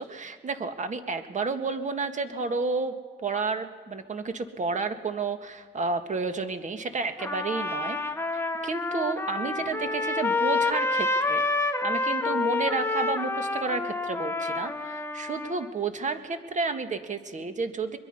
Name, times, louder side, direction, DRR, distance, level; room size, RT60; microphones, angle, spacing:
voice 1, 0.0-3.0 3.2-8.0 8.3-18.0, right 4 dB, 40° right, 8 dB, 1.8 m, -31 dB
Trumpet, 7.2-15.7, left 3 dB, 10° left, 1.4 m, -28 dB
23.5 x 21.5 x 5.6 m, 1.5 s
cardioid pair, 90°, 20 cm